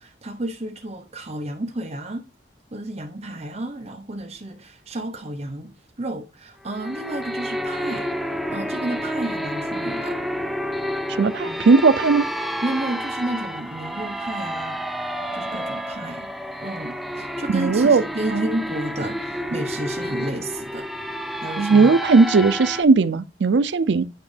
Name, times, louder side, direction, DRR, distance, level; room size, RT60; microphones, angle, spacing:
voice 1, 0.0-2.3 2.7-8.1 8.5-10.2 11.4-11.7 12.6-14.8 15.3-16.3 16.6-20.9 21.4-21.9, right 1 dB, 40° right, 0.9 m, -31 dB
sound 1, 6.7-22.8, equal, ahead, 0.5 m, -30 dB
voice 2, 11.2-12.3 17.5-18.0 18.3-18.4 21.6-24.0, right 4 dB, 85° right, 0.5 m, -17 dB
9.3 x 5.1 x 3.3 m
head